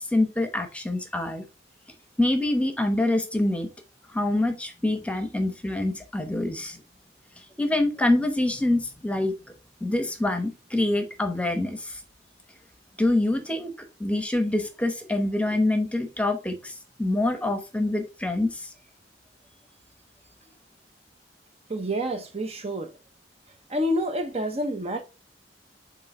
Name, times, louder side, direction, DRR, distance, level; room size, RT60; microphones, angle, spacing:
voice 1, 0.1-1.4 2.2-3.7 4.1-6.8 7.4-9.3 9.8-12.0 13.0-13.7 14.0-18.7, left 1 dB, 5° left, 0.9 m, -25 dB
voice 2, 21.7-22.9 23.7-25.0, equal, 35° right, 0.7 m, -28 dB
7.6 x 3.2 x 4.2 m
head